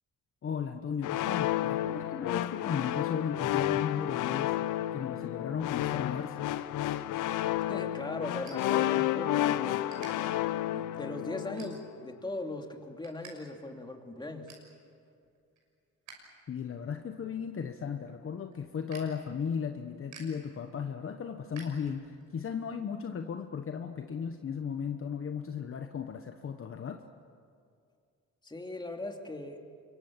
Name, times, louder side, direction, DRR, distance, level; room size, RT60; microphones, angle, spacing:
voice 1, 0.4-4.6 4.9-6.4 16.5-27.0, left 7 dB, 45° left, 6 dB, 1.2 m, -36 dB
sound 1, 1.0-11.9, left 13 dB, 90° left, 0.8 m, -31 dB
voice 2, 7.6-9.8 10.7-14.5 28.4-29.6, left 2 dB, 15° left, 3 dB, 2.8 m, -39 dB
sound 2, 8.4-9.4 9.7-10.1 10.7-10.9 11.4-12.1 12.5-13.3 13.6-13.7 14.1-14.7 15.2-16.2 16.5-22.3, right 5 dB, 75° right, 6.3 m, -54 dB
26.0 x 23.5 x 7.5 m, 2.3 s
cardioid pair, 95°, 30 cm